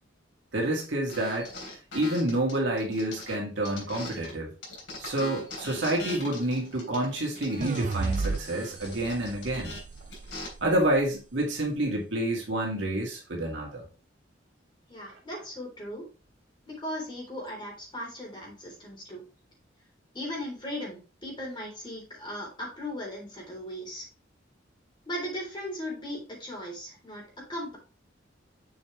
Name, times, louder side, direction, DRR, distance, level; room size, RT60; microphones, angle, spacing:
voice 1, 0.5-1.5 1.9-4.5 5.0-9.7 10.6-13.8, right 1 dB, 65° right, -1 dB, 2.2 m, -28 dB
sound 1, 1.1-4.3 4.6-10.5, left 1 dB, 70° left, 3.4 m, -41 dB
sound 2, 7.6-10.9, right 4 dB, 40° right, 0.4 m, -34 dB
voice 2, 14.9-16.0 16.7-19.2 20.1-24.1 25.1-27.8, left 1 dB, 25° left, -1 dB, 3.4 m, -37 dB
7.0 x 5.5 x 3.2 m, 0.34 s
head